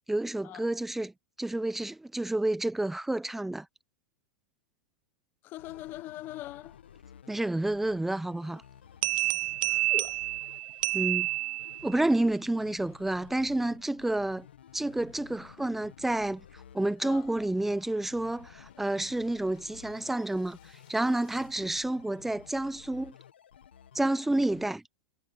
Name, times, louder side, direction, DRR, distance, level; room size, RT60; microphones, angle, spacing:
voice 1, 0.1-1.1 1.4-3.7 7.3-8.6 10.9-11.3 11.8-14.5 14.7-16.4 16.7-20.6 20.9-23.1 23.9-24.8, right 1 dB, 5° right, 0.8 m, -29 dB
voice 2, 5.4-6.8 9.6-10.2 17.0-17.3, left 15 dB, 35° left, 0.9 m, -42 dB
sound 1, 5.6-24.7, left 9 dB, 90° left, 1.6 m, -54 dB
sound 2, 9.0-12.0, right 19 dB, 60° right, 0.4 m, -29 dB
sound 3, 10.4-21.6, left 17 dB, 65° left, 7.9 m, -65 dB
hypercardioid pair, 130°, 6 cm